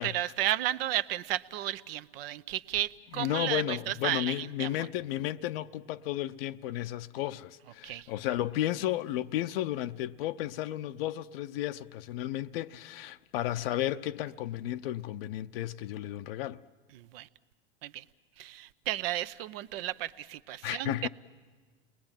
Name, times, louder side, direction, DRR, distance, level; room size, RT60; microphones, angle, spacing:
voice 1, 0.0-4.7 7.8-8.1 16.9-17.3 17.8-18.0 18.4-21.1, right 13 dB, 65° right, 0.8 m, -33 dB
voice 2, 3.1-16.6 20.6-21.1, left 13 dB, 65° left, 0.7 m, -33 dB
29.5 x 20.5 x 9.0 m
hypercardioid pair, 105°, 31 cm